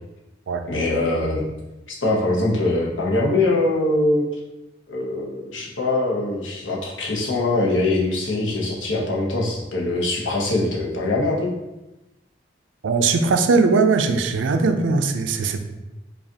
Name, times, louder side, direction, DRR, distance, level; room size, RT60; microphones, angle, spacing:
voice 1, 0.7-1.5 1.9-4.3 4.9-11.5, left 2 dB, 85° left, -2 dB, 0.8 m, -22 dB
voice 2, 12.8-15.6, right 4 dB, 75° right, 8 dB, 0.4 m, -19 dB
4.9 x 2.4 x 2.8 m, 0.99 s
head